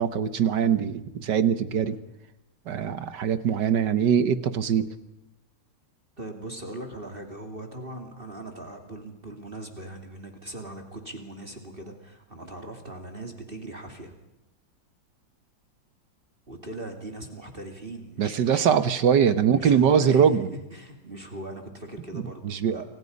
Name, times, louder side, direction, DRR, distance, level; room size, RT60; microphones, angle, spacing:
voice 1, 0.0-2.0 2.7-4.9 18.2-20.5 22.1-22.8, right 7 dB, 70° right, 13 dB, 1.7 m, -22 dB
voice 2, 6.2-14.1 16.5-18.8 19.6-22.8, right 1 dB, 30° right, 4 dB, 2.8 m, -40 dB
29.5 x 25.5 x 5.4 m, 0.90 s
omnidirectional pair, 2.0 m